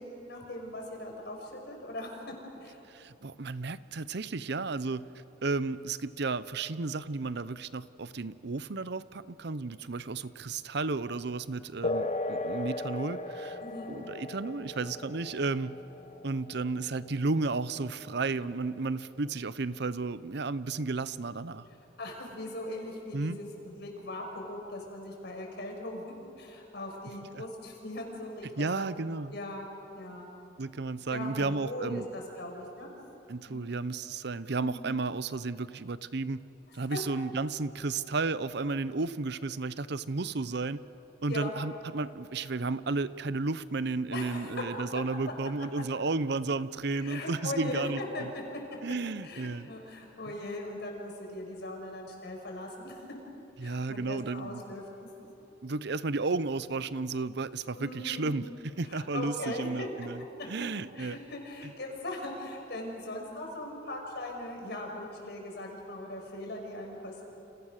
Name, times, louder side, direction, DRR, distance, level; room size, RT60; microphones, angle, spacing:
voice 1, 0.0-2.1 2.6-2.8 13.6-14.0 22.0-28.9 29.3-29.7 29.9-30.3 31.1-32.9 33.5-33.7 34.5-34.8 36.9-37.0 41.3-41.5 44.1-44.6 45.7-45.8 46.9-48.6 49.2-53.1 53.6-55.1 57.7-58.5 58.9-59.9 60.9-67.2, left 1 dB, 65° left, 1 dB, 6.0 m, -39 dB
voice 2, 2.9-5.1 5.4-13.6 13.9-15.8 16.2-21.6 23.1-23.4 27.3-27.4 28.6-29.3 30.6-32.1 33.3-36.4 36.7-40.8 41.2-48.3 48.8-49.7 53.6-54.6 55.6-60.2 60.5-61.2 61.6-61.7, right 3 dB, 65° right, 15 dB, 0.8 m, -33 dB
sound 1, 11.8-19.8, left 2 dB, 40° left, 1.3 m, -38 dB
30.0 x 28.0 x 6.6 m, 3.0 s
head